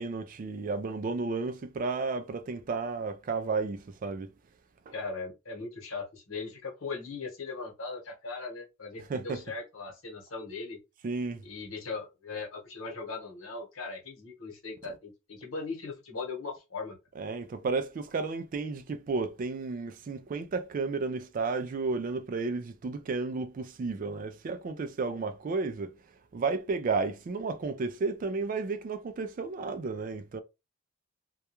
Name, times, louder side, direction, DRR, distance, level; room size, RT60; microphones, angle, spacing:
voice 1, 0.0-4.3 4.9-5.0 9.1-9.4 11.0-11.4 17.2-25.9 26.3-30.4, right 4 dB, 40° right, 0.3 m, -32 dB
voice 2, 4.9-10.8 11.4-17.0, left 4 dB, 80° left, 1.0 m, -39 dB
2.3 x 2.2 x 2.9 m
head